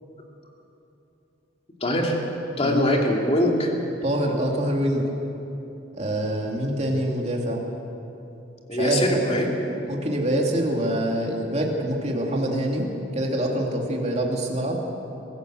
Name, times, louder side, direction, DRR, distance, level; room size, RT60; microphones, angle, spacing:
voice 1, 1.8-2.2 2.6-3.7 8.7-9.6, equal, 30° left, 0 dB, 2.7 m, -22 dB
voice 2, 4.0-5.1 6.0-7.6 8.7-9.2 9.9-12.8 13.1-14.8, right 1 dB, 35° right, 0 dB, 2.7 m, -25 dB
23.0 x 15.0 x 7.8 m, 3.0 s
head